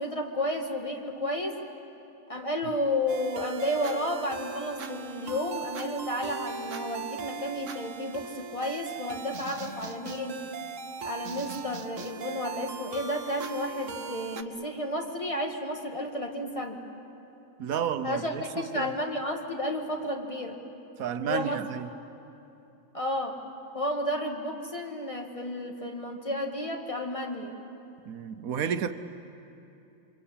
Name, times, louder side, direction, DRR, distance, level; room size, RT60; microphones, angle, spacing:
voice 1, 0.0-1.6 2.3-10.4 11.0-16.8 18.0-20.6 21.2-21.6 22.9-23.4 23.7-27.6, left 1 dB, 25° left, 2.1 m, -32 dB
sound 1, 3.1-14.4, right 5 dB, 65° right, 1.4 m, -39 dB
voice 2, 17.6-18.9 21.0-21.9 28.1-28.9, right 8 dB, 85° right, 1.3 m, -31 dB
28.5 x 24.0 x 8.5 m
omnidirectional pair, 1.4 m